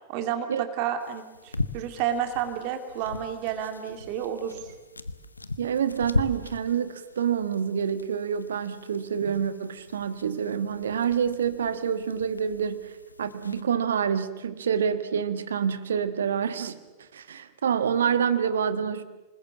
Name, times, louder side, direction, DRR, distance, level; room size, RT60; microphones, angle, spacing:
voice 1, 0.1-4.7, right 9 dB, 45° right, 7 dB, 2.3 m, -31 dB
sound 1, 1.0-13.6, left 2 dB, 80° left, 1.0 m, -38 dB
voice 2, 5.6-16.8 17.1-19.0, right 7 dB, 65° right, 12 dB, 1.5 m, -27 dB
27.5 x 20.5 x 7.5 m, 1.1 s
figure-of-eight pair, 90°, 0 cm